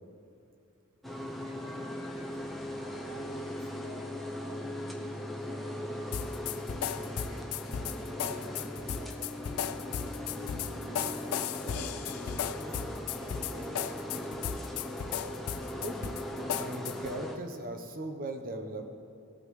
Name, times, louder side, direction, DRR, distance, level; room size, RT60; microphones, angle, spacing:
sound 1, 1.0-17.4, left 1 dB, ahead, 0.8 m, -39 dB
voice 1, 1.4-6.2 6.6-9.5 10.1-10.2 10.9-14.2, right 1 dB, 65° right, -2 dB, 2.0 m, -53 dB
sound 2, 6.1-17.1, left 8 dB, 85° left, 0.4 m, -36 dB
voice 2, 15.8-16.2 16.6-18.9, right 2 dB, 40° right, 5 dB, 0.9 m, -38 dB
17.5 x 8.7 x 3.2 m, 2.6 s
head